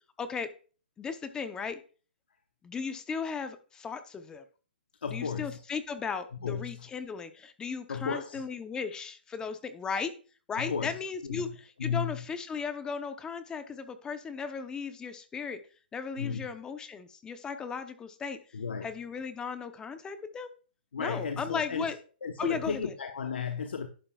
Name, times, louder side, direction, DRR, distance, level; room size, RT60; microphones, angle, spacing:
voice 1, 0.2-0.5 1.0-1.8 2.6-4.4 5.1-10.1 10.5-11.5 11.8-15.6 15.9-18.4 18.8-20.5 21.0-22.0 22.4-22.8, left 5 dB, 15° left, 0.7 m, -36 dB
voice 2, 5.0-5.6 6.3-6.9 7.9-8.4 10.5-12.2 16.2-16.5 18.5-18.9 20.9-21.9 22.2-23.9, left 6 dB, 90° left, 1.0 m, -34 dB
11.5 x 8.6 x 2.4 m
hypercardioid pair, 145°, 6 cm